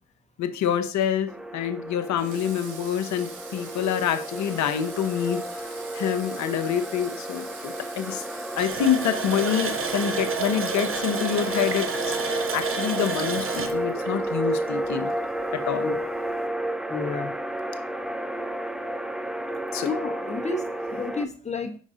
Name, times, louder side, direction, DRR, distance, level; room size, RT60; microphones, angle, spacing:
voice 1, 0.4-8.2 8.6-11.9 12.2-15.1 15.7-15.9 19.7-19.9, left 9 dB, 65° left, 9 dB, 0.9 m, -27 dB
sound 1, 1.3-21.2, right 1 dB, ahead, 0.5 m, -32 dB
Water / Water tap faucet, 2.2-10.7, right 5 dB, 75° right, 1.3 m, -44 dB
Water tap faucet, 8.6-15.1 15.4-15.5 16.0-16.1, right 5 dB, 45° right, 1.0 m, -31 dB
voice 2, 16.9-17.3 19.9-21.8, left 4 dB, 20° left, 5 dB, 1.3 m, -31 dB
5.2 x 5.0 x 3.8 m, 0.39 s
supercardioid pair, 55°, 30 cm